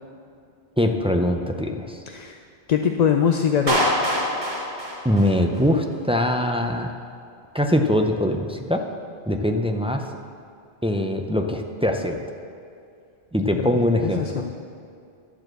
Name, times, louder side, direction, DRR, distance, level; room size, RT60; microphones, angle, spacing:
voice 1, 0.8-2.0 5.0-6.9 7.5-8.8 9.3-10.1 10.8-12.2 13.3-14.4, left 1 dB, 10° right, 3 dB, 0.3 m, -22 dB
voice 2, 2.1-2.4 2.7-4.2 13.5-14.5, left 7 dB, 55° left, 4 dB, 0.5 m, -23 dB
Clapping, 3.7-5.7, equal, 45° right, 1.5 m, -24 dB
11.5 x 4.9 x 7.7 m, 2.4 s
omnidirectional pair, 1.1 m